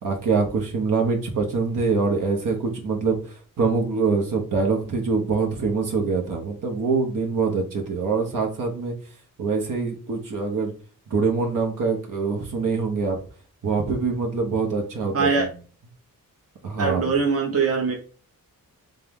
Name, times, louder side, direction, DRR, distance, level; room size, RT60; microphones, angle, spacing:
voice 1, 0.0-8.9 9.4-10.7 11.1-13.2 13.6-15.5 16.6-17.2, right 4 dB, 70° right, 1 dB, 1.1 m, -24 dB
voice 2, 15.1-15.5 16.8-17.9, right 5 dB, 45° right, 1 dB, 0.9 m, -22 dB
3.6 x 3.3 x 3.6 m, 0.39 s
wide cardioid pair, 120°, 34 cm